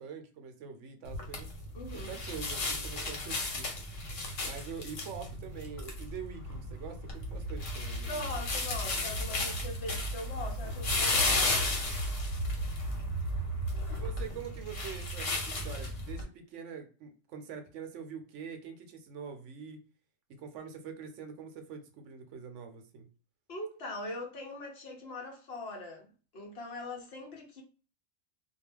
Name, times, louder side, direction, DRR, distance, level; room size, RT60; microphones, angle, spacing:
voice 1, 0.0-1.5 1.9-3.7 4.4-8.2 13.9-19.9 20.3-23.1, right 6 dB, 75° right, 0.9 m, -44 dB
sound 1, 1.1-16.2, left 1 dB, 75° left, 1.2 m, -34 dB
voice 2, 1.7-2.2 8.1-11.7 23.5-27.6, left 2 dB, 60° left, 0.9 m, -41 dB
2.3 x 2.2 x 3.3 m
omnidirectional pair, 1.3 m